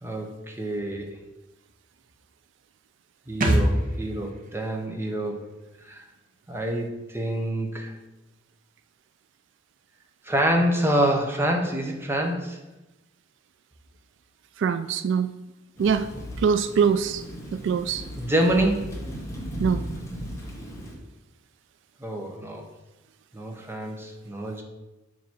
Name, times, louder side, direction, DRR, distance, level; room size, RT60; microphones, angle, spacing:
voice 1, 0.0-1.1 3.3-5.4 5.9-6.0 6.5-7.9 10.2-12.6 18.2-18.9 22.0-22.6 23.3-24.6, right 1 dB, 10° right, 1 dB, 1.0 m, -26 dB
sound 1, 3.4-6.9 7.2-7.3, right 1 dB, 45° right, 1.0 m, -28 dB
voice 2, 14.6-15.3 15.8-16.1 16.4-17.2 17.5-18.1 19.6-19.8, right 6 dB, 65° right, 11 dB, 0.3 m, -23 dB
Thunder / Rain, 15.8-21.0, equal, 15° left, 1.2 m, -36 dB
7.0 x 3.0 x 6.0 m, 1.0 s
head